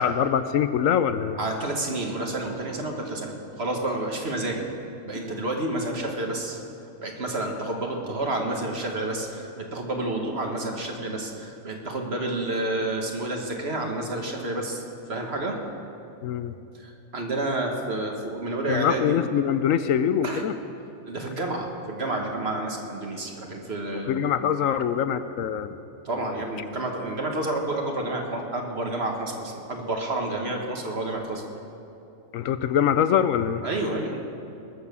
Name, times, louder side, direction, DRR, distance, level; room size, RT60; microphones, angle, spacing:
voice 1, 0.0-1.4 16.2-16.6 18.7-20.5 24.1-25.8 26.2-26.3 32.3-33.6, left 8 dB, 75° left, 11 dB, 0.9 m, -24 dB
voice 2, 1.4-4.7 5.0-6.6 7.0-15.6 16.7-19.2 20.2-20.4 21.0-24.3 26.0-31.4 33.6-34.2, right 2 dB, 50° right, 2 dB, 1.8 m, -30 dB
20.0 x 7.1 x 6.9 m, 2.8 s
omnidirectional pair, 1.5 m